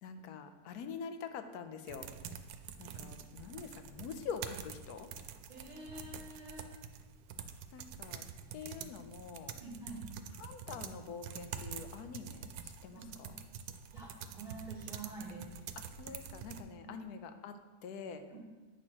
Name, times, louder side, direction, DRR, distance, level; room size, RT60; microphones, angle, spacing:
voice 1, 0.0-2.1 2.8-5.1 7.7-8.2 8.5-9.6 10.4-13.3 15.8-18.2, left 6 dB, 80° left, 8 dB, 1.2 m, -45 dB
sound 1, 1.9-16.6, right 7 dB, 85° right, 1.1 m, -47 dB
voice 2, 5.5-6.7 9.6-10.1 12.9-13.3 13.9-15.6 16.7-17.0 18.3-18.4, right 2 dB, 30° right, -3 dB, 1.5 m, -48 dB
9.7 x 6.2 x 2.9 m, 1.3 s
omnidirectional pair, 1.6 m